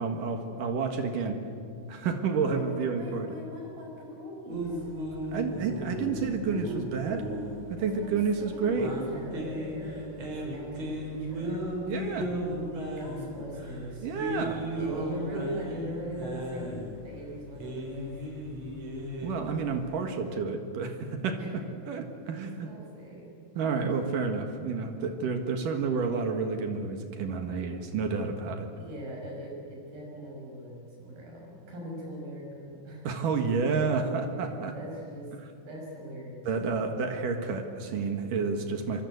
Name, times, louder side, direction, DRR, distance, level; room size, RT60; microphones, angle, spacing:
voice 1, 0.0-1.4 1.9-3.3 5.3-7.3 7.7-8.9 11.9-12.3 14.0-14.6 19.2-22.7 23.6-28.7 33.0-34.7 36.5-39.0, right 5 dB, 70° right, 5 dB, 3.2 m, -30 dB
voice 2, 2.4-4.9 7.8-11.7 13.0-14.1 14.7-18.1 21.4-21.5 22.6-23.3 28.8-33.2 34.7-35.3 35.6-36.5, equal, 85° right, -1 dB, 8.4 m, -41 dB
sound 1, 4.5-20.0, equal, 45° right, 5.8 m, -36 dB
25.0 x 24.0 x 8.0 m, 2.5 s
omnidirectional pair, 4.1 m